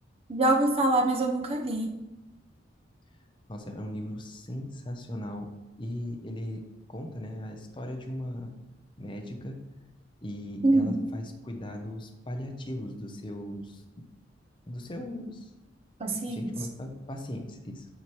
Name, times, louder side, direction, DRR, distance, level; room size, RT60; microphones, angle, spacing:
voice 1, 0.3-1.9 10.6-10.9 16.0-16.4, right 2 dB, 30° right, 1 dB, 0.8 m, -24 dB
voice 2, 3.5-5.5 5.8-6.6 6.9-8.5 9.0-9.6 10.2-14.0 14.7-15.5 16.1-17.9, left 1 dB, 25° left, 3 dB, 0.7 m, -38 dB
9.3 x 4.4 x 3.1 m, 1.0 s
head